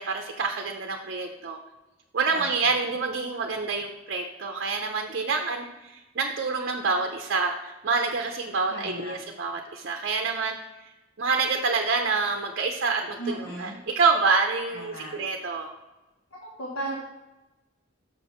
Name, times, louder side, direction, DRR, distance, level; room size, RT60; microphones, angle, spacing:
voice 1, 0.0-1.6 2.1-10.6 11.2-13.7 13.9-14.9 15.2-15.7, right 4 dB, 55° right, 3 dB, 0.6 m, -27 dB
voice 2, 2.3-2.8 8.7-9.2 13.2-13.8 14.7-15.5 16.3-17.0, right 1 dB, 80° left, -3 dB, 1.4 m, -36 dB
6.5 x 4.5 x 5.6 m, 1.1 s
head